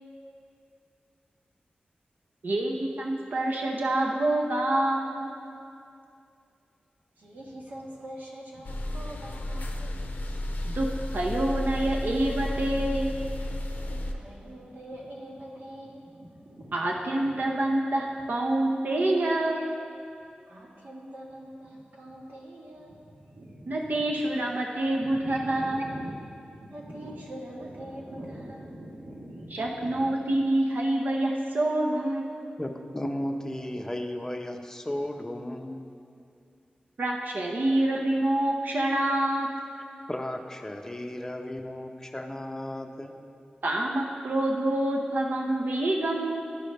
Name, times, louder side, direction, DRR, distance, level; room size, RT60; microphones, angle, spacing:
voice 1, 2.4-5.3 10.6-10.9 11.1-13.1 16.7-19.7 23.7-25.9 29.5-32.4 37.0-39.5 43.6-46.4, right 1 dB, 70° right, 0 dB, 0.7 m, -27 dB
voice 2, 7.2-10.8 12.2-12.7 13.8-17.4 19.1-19.2 19.5-19.7 20.5-24.3 24.8-30.1, right 1 dB, 90° right, -5 dB, 1.6 m, -44 dB
sound 1, 8.6-14.1, left 1 dB, 70° left, 0.5 m, -32 dB
voice 3, 32.6-36.0 40.1-43.2, left 1 dB, 15° left, 4 dB, 0.5 m, -35 dB
11.5 x 5.2 x 3.3 m, 2.5 s
wide cardioid pair, 95°, 3 cm